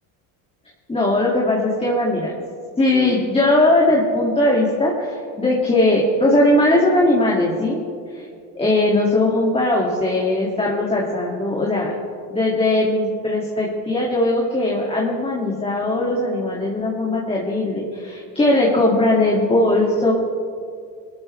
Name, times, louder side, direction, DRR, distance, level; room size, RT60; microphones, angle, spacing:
voice 1, 0.9-2.3 2.8-7.8 8.1-8.3 8.6-11.9 12.3-20.1, left 1 dB, 15° left, -3 dB, 2.2 m, -19 dB
19.5 x 13.0 x 3.3 m, 2.3 s
supercardioid pair, 95°, 37 cm